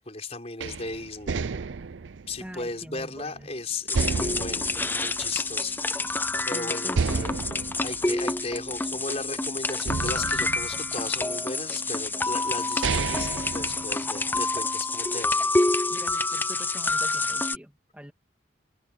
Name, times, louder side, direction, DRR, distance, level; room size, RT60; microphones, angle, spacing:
voice 1, 0.0-1.4 2.3-5.9 6.4-7.3 7.8-15.4, left 3 dB, 30° left, 5.9 m, -36 dB
sound 1, 0.6-3.4 3.9-5.9 6.2-6.3 6.9-9.3 9.8-11.4 12.2-12.3 12.6-14.4, right 5 dB, 75° right, 0.6 m, -32 dB
voice 2, 2.4-3.5 6.5-7.4 15.9-18.1, equal, 5° right, 2.0 m, -43 dB
sound 2, 3.9-17.6, left 2 dB, 10° left, 0.5 m, -28 dB
head